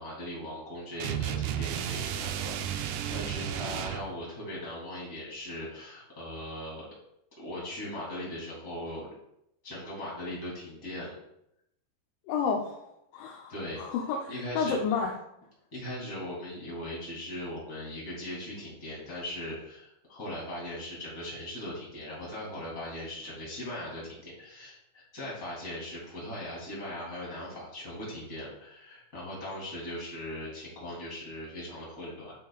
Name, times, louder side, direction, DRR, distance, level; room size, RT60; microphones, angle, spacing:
voice 1, 0.0-6.9 7.4-9.1 9.6-11.2 13.5-13.8 14.3-14.8 15.7-32.3, left 1 dB, 20° left, -6 dB, 3.1 m, -39 dB
sound 1, 1.0-4.1, right 10 dB, 90° right, 2.2 m, -33 dB
voice 2, 12.3-15.1, left 5 dB, 80° left, 0 dB, 3.0 m, -31 dB
11.0 x 6.4 x 2.4 m, 0.80 s
omnidirectional pair, 5.3 m